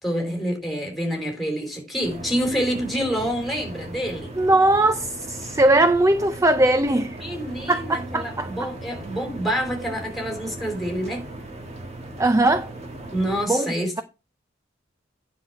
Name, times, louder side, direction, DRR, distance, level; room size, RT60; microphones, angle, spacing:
voice 1, 0.0-4.3 7.2-11.3 13.1-14.0, equal, ahead, 3.8 m, -27 dB
sound 1, 2.0-13.5, right 1 dB, 35° right, 1.8 m, -37 dB
voice 2, 4.4-7.2 7.7-8.7 12.2-12.7 13.5-13.7, right 2 dB, 15° right, 0.5 m, -20 dB
9.6 x 6.0 x 4.6 m
head